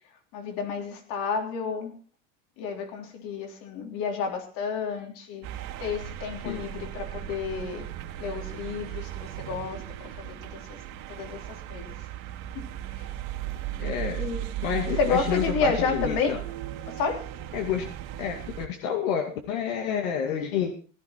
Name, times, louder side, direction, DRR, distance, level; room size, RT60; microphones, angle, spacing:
voice 1, 0.3-2.0 2.6-5.5 5.8-7.9 8.2-10.8 11.1-11.4 11.7-11.9 14.2-14.4 15.0-16.4 16.9-17.2, left 5 dB, 60° left, 4 dB, 3.6 m, -30 dB
sound 1, 5.4-18.7, right 13 dB, 55° right, 2.6 m, -36 dB
voice 2, 13.8-14.2 14.6-16.4 17.5-20.7, left 8 dB, 85° left, 4 dB, 2.3 m, -29 dB
16.5 x 11.5 x 4.4 m, 0.37 s
supercardioid pair, 135°, 39 cm